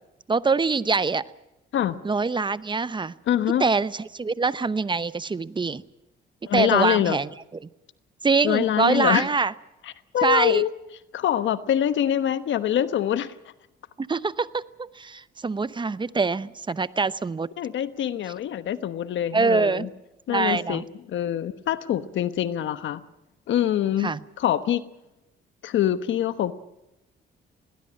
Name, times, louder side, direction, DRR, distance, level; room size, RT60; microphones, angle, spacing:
voice 1, 0.3-1.2 2.0-3.1 3.6-5.8 6.5-7.3 8.2-9.5 10.2-10.6 14.0-17.5 19.3-19.9 20.3-20.8 24.0-24.2, right 4 dB, 25° right, 16 dB, 0.8 m, -24 dB
voice 2, 3.3-3.6 6.5-7.2 8.4-9.3 9.8-10.7 11.1-13.3 17.6-19.9 20.3-23.0 23.5-24.1 24.4-24.8 25.6-26.5, left 11 dB, 70° left, 13 dB, 1.1 m, -24 dB
21.0 x 18.5 x 8.8 m, 0.93 s
cardioid pair, 90°, 20 cm